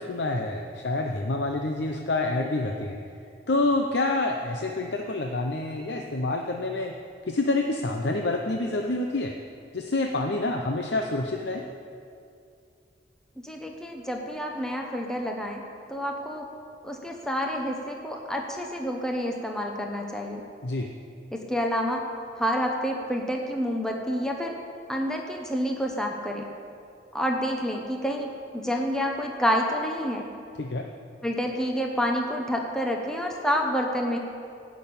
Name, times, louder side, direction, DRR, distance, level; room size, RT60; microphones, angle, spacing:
voice 1, 0.0-3.0 3.5-6.9 7.3-9.4 9.7-11.6 20.6-20.9 30.6-30.9, left 2 dB, 80° left, 3 dB, 0.8 m, -27 dB
voice 2, 13.4-15.6 15.9-16.5 16.8-20.4 21.3-22.0 22.3-24.5 24.9-26.5 27.1-30.3 31.2-34.2, equal, 5° left, 1 dB, 0.9 m, -28 dB
16.5 x 6.3 x 8.6 m, 2.5 s
head